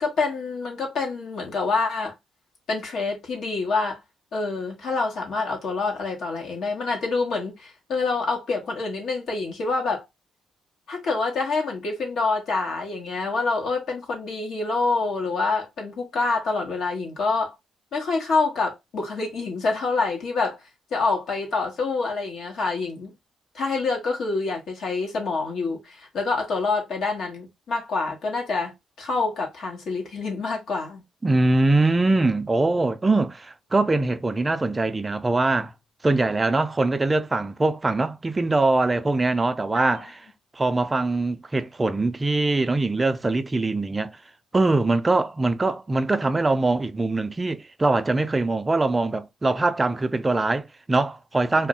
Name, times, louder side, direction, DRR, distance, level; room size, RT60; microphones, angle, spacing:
voice 1, 0.0-2.1 2.7-4.0 4.3-10.0 10.9-17.5 17.9-20.6 20.9-23.1 23.5-31.0 39.7-40.0, left 3 dB, 65° left, 1.1 m, -26 dB
voice 2, 31.2-35.7 36.0-40.3 40.5-44.2 44.5-51.7, right 2 dB, 20° right, 0.3 m, -22 dB
2.4 x 2.0 x 3.6 m
cardioid pair, 90°, 0 cm